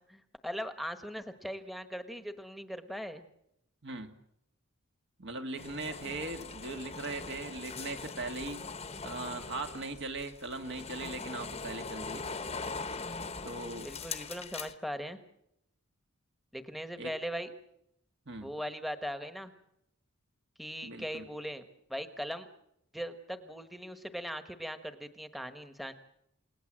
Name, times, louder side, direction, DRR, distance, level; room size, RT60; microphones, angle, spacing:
voice 1, 0.1-3.2 13.8-15.2 16.5-17.5 18.4-19.5 20.6-21.6 21.9-22.5 22.9-25.9, equal, ahead, 8 dB, 1.3 m, -39 dB
voice 2, 3.8-4.1 5.2-8.6 9.0-12.3 13.4-13.9 17.0-17.1 18.3-18.5 20.8-21.3, right 2 dB, 55° right, 5 dB, 2.0 m, -39 dB
sound 1, 5.6-14.7, left 4 dB, 30° left, 1.1 m, -41 dB
29.0 x 19.0 x 7.6 m, 0.80 s
head